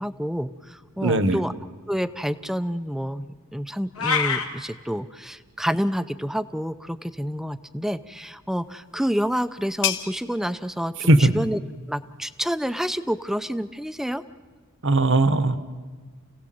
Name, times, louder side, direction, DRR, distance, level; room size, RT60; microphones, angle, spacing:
voice 1, 0.0-1.5 1.9-3.3 3.5-11.6 11.9-14.2, equal, ahead, 13 dB, 0.6 m, -28 dB
voice 2, 1.0-1.4 11.1-11.3 14.8-15.6, right 2 dB, 60° right, 12 dB, 1.3 m, -18 dB
sound 1, 4.0-4.5, left 5 dB, 80° left, 2.5 m, -23 dB
sound 2, 8.5-13.9, left 10 dB, 60° left, 1.5 m, -36 dB
29.0 x 17.0 x 7.8 m, 1.5 s
head